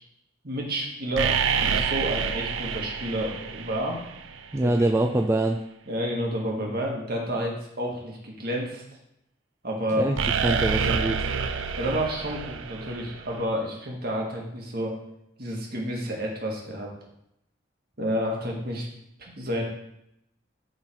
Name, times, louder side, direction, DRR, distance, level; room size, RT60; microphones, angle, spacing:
voice 1, 0.4-4.0 4.6-4.7 5.9-8.8 9.6-10.1 11.8-14.9 15.4-16.9 18.0-18.9 19.2-19.6, equal, 50° right, -1 dB, 1.8 m, -30 dB
sound 1, 1.1-4.4 10.2-13.4, right 6 dB, 75° right, 0.6 m, -28 dB
voice 2, 4.5-5.6 10.0-10.2 10.4-11.2, right 1 dB, 15° right, 3 dB, 0.3 m, -24 dB
11.0 x 3.9 x 4.5 m, 0.80 s
head